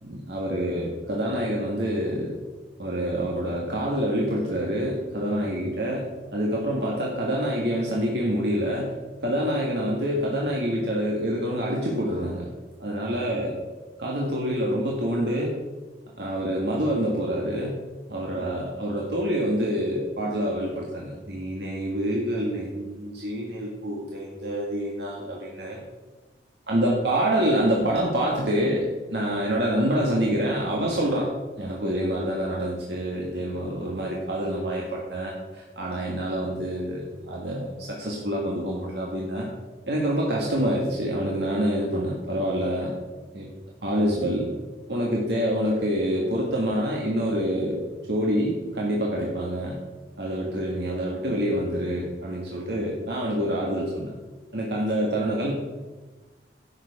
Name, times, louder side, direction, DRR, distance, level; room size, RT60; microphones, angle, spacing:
voice 1, 0.0-2.3 2.8-8.9 9.2-12.4 12.8-13.5 14.0-15.6 16.2-17.8 18.1-25.8 26.7-31.3 31.6-39.5 39.9-43.0 43.3-43.5 43.8-44.5 44.9-47.8 48.1-49.9 50.2-54.1 54.5-55.5, equal, 65° right, -3 dB, 1.7 m, -26 dB
11.0 x 8.0 x 4.9 m, 1.2 s
head